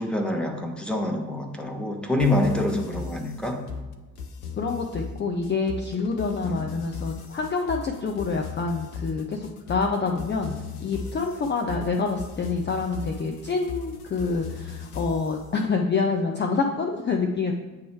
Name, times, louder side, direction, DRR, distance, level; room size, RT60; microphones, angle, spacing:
voice 1, 0.0-3.6 6.4-6.6, left 1 dB, ahead, 2 dB, 1.2 m, -26 dB
sound 1, 2.2-15.4, left 6 dB, 90° left, 0.6 m, -38 dB
voice 2, 4.6-17.5, left 4 dB, 25° left, 3 dB, 0.6 m, -27 dB
8.4 x 3.1 x 4.7 m, 1.2 s
figure-of-eight pair, 50°, 43 cm